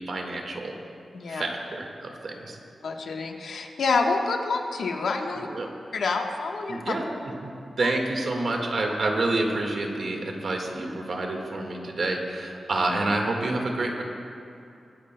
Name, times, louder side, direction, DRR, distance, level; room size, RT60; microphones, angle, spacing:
voice 1, 0.1-0.7 1.3-2.6 5.3-5.7 6.7-7.0 7.4-14.0, right 2 dB, 55° right, 1 dB, 1.6 m, -28 dB
voice 2, 2.8-5.5 5.9-6.8 7.8-7.9, left 4 dB, 85° left, 2 dB, 1.1 m, -27 dB
23.0 x 13.0 x 2.2 m, 2.7 s
wide cardioid pair, 155°, 0 cm